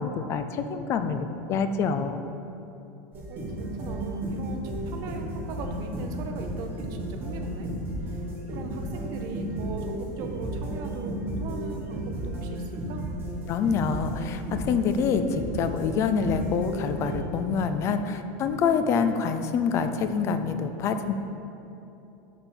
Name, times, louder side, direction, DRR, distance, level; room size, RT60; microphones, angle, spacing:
voice 1, 0.0-2.2 13.5-21.2, left 6 dB, 35° left, 9 dB, 0.4 m, -26 dB
sound 1, 3.1-17.2, right 1 dB, 25° right, 1.2 m, -33 dB
voice 2, 3.3-7.7 8.1-8.2 8.5-13.0, right 4 dB, 45° right, 4 dB, 0.6 m, -39 dB
5.5 x 4.2 x 6.1 m, 2.9 s
supercardioid pair, 155°, 9 cm